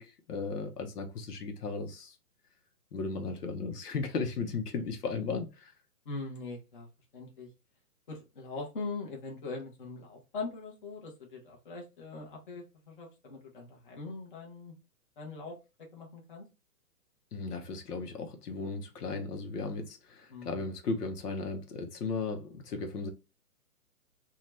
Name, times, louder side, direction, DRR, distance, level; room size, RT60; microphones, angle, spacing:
voice 1, 0.0-2.1 2.9-5.7 17.3-23.1, left 4 dB, 80° left, 0.9 m, -36 dB
voice 2, 6.0-6.9 7.1-7.5 8.1-14.7 15.2-15.5 15.9-16.4 20.3-20.6, left 3 dB, 35° left, 0.9 m, -41 dB
2.8 x 2.3 x 3.0 m
hypercardioid pair, 170°, 46 cm